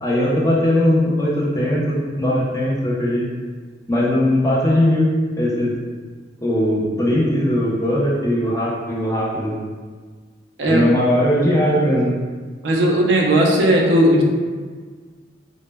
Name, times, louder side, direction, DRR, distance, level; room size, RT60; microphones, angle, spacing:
voice 1, 0.0-3.3 3.9-5.7 6.4-9.6 10.6-12.1, left 1 dB, 15° left, -6 dB, 0.4 m, -19 dB
voice 2, 12.6-14.2, right 1 dB, 65° right, 0 dB, 0.4 m, -16 dB
2.1 x 2.0 x 3.2 m, 1.5 s
head